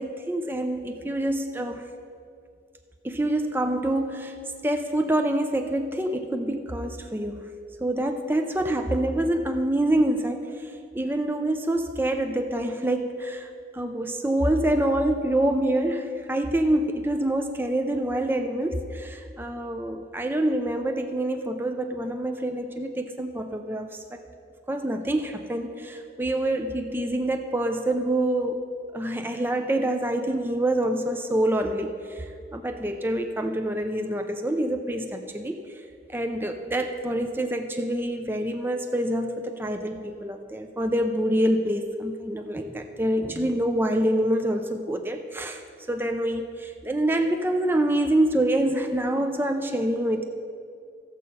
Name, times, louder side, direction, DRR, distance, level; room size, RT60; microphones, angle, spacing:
voice 1, 0.0-1.8 3.0-4.4 4.6-7.5 7.8-24.2 24.7-28.6 28.9-35.6 36.1-45.6 45.9-50.2, right 1 dB, 10° right, 5 dB, 0.5 m, -26 dB
14.5 x 7.6 x 5.4 m, 2.3 s
head